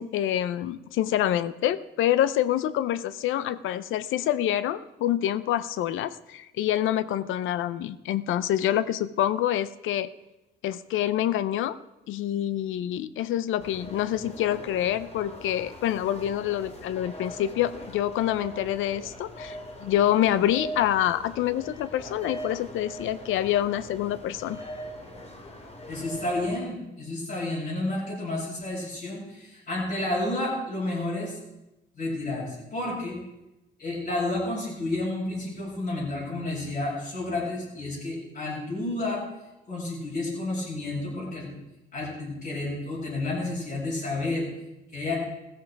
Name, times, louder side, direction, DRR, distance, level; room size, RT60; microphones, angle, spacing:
voice 1, 0.0-10.1 10.6-11.8 12.1-24.6, left 11 dB, 85° left, 16 dB, 0.7 m, -26 dB
sound 1, 13.6-26.6, equal, 35° left, 2.6 m, -41 dB
voice 2, 25.9-31.4 31.9-33.2 33.8-39.2 39.7-41.5 41.9-44.5 44.9-45.1, left 2 dB, 50° left, -8 dB, 6.9 m, -31 dB
15.5 x 14.0 x 4.7 m, 0.95 s
cardioid pair, 90°, 20 cm